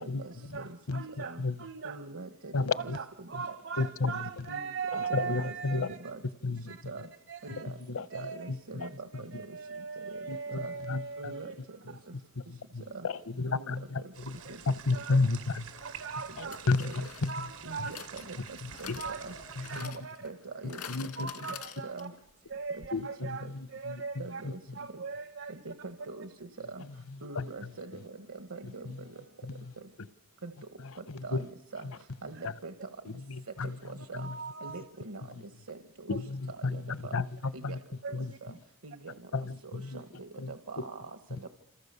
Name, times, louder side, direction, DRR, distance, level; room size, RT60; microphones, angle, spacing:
voice 1, 0.0-0.8 1.2-1.4 1.8-2.9 3.2-3.3 4.5-6.2 6.7-7.1 7.4-7.8 8.1-9.6 10.0-10.2 10.5-10.7 11.2-11.8 12.9-13.1 13.5-14.0 14.5-14.6 16.4-16.5 16.8-17.0 17.6-19.3 19.8-19.9 20.2-20.8 21.2-21.3 21.8-22.1 22.7-22.8 23.4-23.5 24.2-24.6 24.9-25.0 25.5-26.8 27.2-29.2 30.4-30.5 31.2-31.9 32.2-32.7 33.6-34.3 34.6-35.2 35.7-36.2 36.5-37.2 37.5-37.8 38.2-38.6 38.8-39.1 39.6-41.5, right 3 dB, 70° right, 1.5 m, -44 dB
voice 2, 0.5-2.0 2.7-6.0 6.7-6.8 7.3-7.6 8.1-8.5 8.8-8.9 9.3-11.5 14.4-14.6 14.9-15.3 15.8-16.6 16.9-17.0 17.3-17.9 19.0-19.2 19.6-20.3 21.2-22.1 22.5-23.4 23.7-24.4 24.7-25.6 27.2-27.3 34.2-34.8 36.1-36.2 38.0-38.4, right 5 dB, 55° right, 1.0 m, -39 dB
voice 3, 2.5-3.0 3.8-4.1 5.0-5.9 6.4-6.6 7.9-8.0 10.3-11.0 12.7-14.0 14.7-15.6 16.7-17.3 18.9-19.0 19.6-19.9 20.9-21.3 22.9-23.3 23.9-24.0 27.4-27.5 31.3-31.4 33.3-33.7 34.1-34.3 36.1-37.3 37.6-37.8 38.1-38.3 39.3-39.4 39.7-40.0, left 3 dB, 70° left, 0.9 m, -31 dB
sound 1, 14.1-19.9, right 6 dB, 85° right, 5.2 m, -47 dB
sound 2, 15.2-15.3 16.5-22.3 22.5-22.6 22.8-22.9, left 8 dB, 85° left, 2.1 m, -47 dB
28.0 x 27.5 x 6.9 m
head